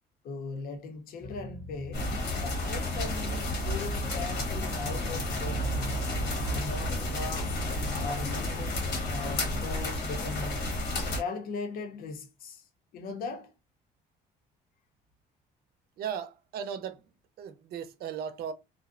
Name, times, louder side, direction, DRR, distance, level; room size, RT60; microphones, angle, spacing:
voice 1, 0.2-2.1 2.4-6.2 6.5-7.6 8.0-10.6 11.1-12.7 12.9-13.5, left 4 dB, 60° left, 0.6 m, -39 dB
sound 1, 1.2-9.6, left 2 dB, 10° left, 0.5 m, -44 dB
sound 2, 1.9-11.2, left 1 dB, 85° left, 1.1 m, -31 dB
voice 2, 16.0-17.1 17.4-18.5, right 8 dB, 65° right, 0.5 m, -36 dB
2.5 x 2.0 x 2.4 m
cardioid pair, 110°, 17 cm